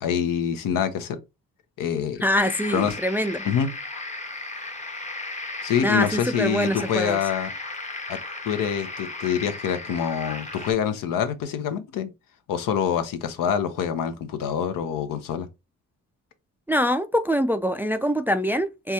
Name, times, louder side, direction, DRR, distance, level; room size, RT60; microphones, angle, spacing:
voice 1, 0.0-1.2 1.8-2.2 2.7-3.0 3.4-3.7 5.6-7.5 8.1-8.2 8.4-12.1 12.5-15.5, left 8 dB, 75° left, 0.7 m, -26 dB
voice 2, 2.2-3.4 5.8-7.2 16.7-18.9, equal, 5° right, 0.3 m, -24 dB
sound 1, 2.4-10.7, left 2 dB, 20° left, 0.7 m, -35 dB
4.5 x 2.3 x 2.7 m
supercardioid pair, 60°, 33 cm